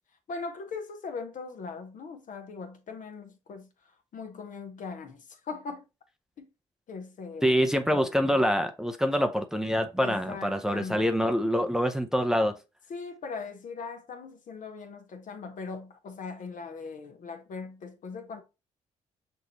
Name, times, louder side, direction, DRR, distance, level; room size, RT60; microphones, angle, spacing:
voice 1, 0.3-3.7 4.1-5.9 6.4-6.5 6.9-7.6 7.9-8.4 10.0-11.3 12.9-18.4, left 4 dB, 55° left, 1.0 m, -40 dB
voice 2, 7.4-12.5, equal, 5° right, 0.6 m, -25 dB
5.9 x 2.6 x 2.9 m
hypercardioid pair, 50°, 16 cm